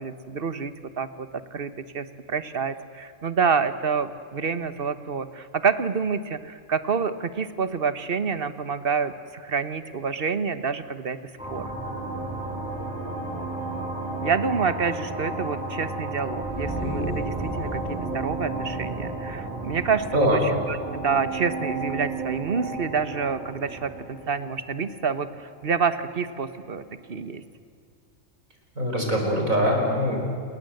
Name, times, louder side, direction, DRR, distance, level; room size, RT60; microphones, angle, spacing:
voice 1, 0.0-11.2 11.5-11.7 14.2-20.3 20.9-26.8 27.1-27.4, right 5 dB, 45° right, 12 dB, 1.3 m, -28 dB
sound 1, 11.4-25.5, right 2 dB, 5° right, 5.5 m, -32 dB
voice 2, 28.8-30.2, equal, 80° right, 1 dB, 5.7 m, -23 dB
28.5 x 21.0 x 7.9 m, 2.4 s
omnidirectional pair, 1.4 m